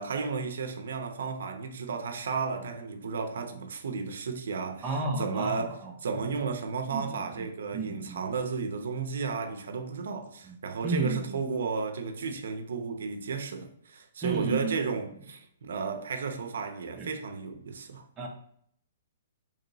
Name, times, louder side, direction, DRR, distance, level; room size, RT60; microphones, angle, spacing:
voice 1, 0.0-4.9 5.2-5.8 6.0-18.1, right 5 dB, 65° right, 0.5 m, -33 dB
voice 2, 4.8-6.3 6.9-7.5 7.7-8.2 10.4-10.5 10.8-11.4 14.2-14.8 17.0-17.1 18.2-18.3, right 3 dB, 10° right, 0.5 m, -33 dB
2.9 x 2.8 x 3.9 m
hypercardioid pair, 180°, 0 cm